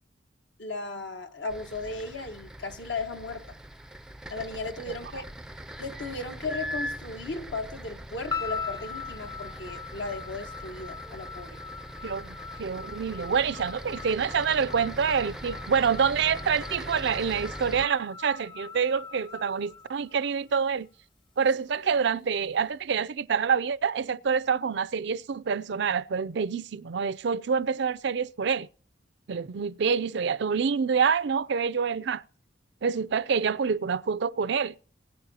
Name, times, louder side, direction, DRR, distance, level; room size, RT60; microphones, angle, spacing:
voice 1, 0.6-3.6 4.3-5.2 5.8-11.6, left 3 dB, 75° left, 1.4 m, -36 dB
sound 1, 1.5-17.9, equal, 5° right, 0.4 m, -41 dB
sound 2, 8.3-20.6, left 6 dB, 30° left, 0.8 m, -41 dB
voice 2, 12.0-20.9 21.4-28.7 29.3-32.2 32.8-34.7, right 6 dB, 65° right, 0.4 m, -27 dB
21.0 x 9.8 x 2.9 m
head